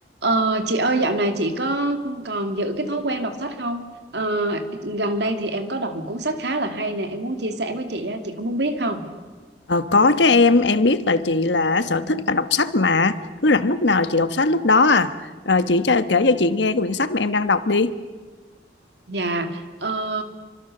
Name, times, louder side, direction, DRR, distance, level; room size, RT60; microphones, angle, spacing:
voice 1, 0.2-3.8 4.1-9.0 19.1-20.2, right 2 dB, 75° right, 6 dB, 2.7 m, -25 dB
voice 2, 9.7-18.0, left 3 dB, 85° left, 11 dB, 1.3 m, -19 dB
28.0 x 25.0 x 6.8 m, 1.4 s
head